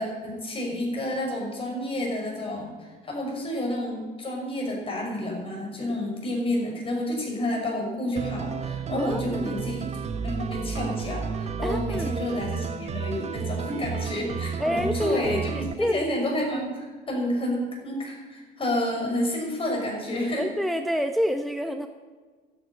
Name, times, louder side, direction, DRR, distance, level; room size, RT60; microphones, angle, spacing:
voice 1, 0.0-20.5, left 1 dB, 30° left, -1 dB, 6.2 m, -30 dB
sound 1, 8.2-15.7, right 6 dB, 40° right, 1.1 m, -32 dB
voice 2, 9.0-9.6 11.6-12.2 14.6-16.0 20.4-21.9, equal, ahead, 6 dB, 0.8 m, -28 dB
12.5 x 10.0 x 9.8 m, 1.4 s
cardioid pair, 115°, 17 cm